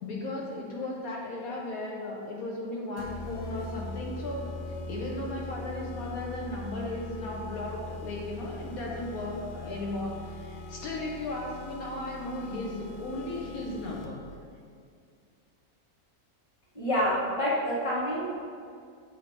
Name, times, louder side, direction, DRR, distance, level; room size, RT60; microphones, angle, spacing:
voice 1, 0.0-14.2, left 2 dB, 70° left, -3 dB, 1.2 m, -36 dB
sound 1, 3.0-14.3, left 2 dB, 90° left, 1.1 m, -41 dB
voice 2, 16.7-18.4, equal, 25° left, -7 dB, 1.2 m, -27 dB
7.6 x 2.8 x 4.5 m, 2.3 s
omnidirectional pair, 1.6 m